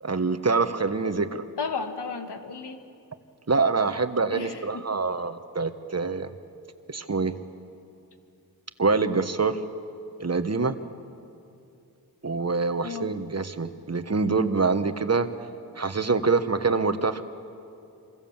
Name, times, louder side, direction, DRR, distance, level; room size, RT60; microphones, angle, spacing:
voice 1, 0.0-1.4 3.5-6.3 6.9-7.3 8.8-9.6 10.2-10.8 12.2-15.3 15.8-17.2, right 4 dB, 40° right, 9 dB, 1.4 m, -25 dB
voice 2, 1.6-2.8 4.3-4.8 12.8-13.1, left 5 dB, 90° left, 6 dB, 1.8 m, -33 dB
27.0 x 24.0 x 7.4 m, 2.6 s
cardioid pair, 55°, 39 cm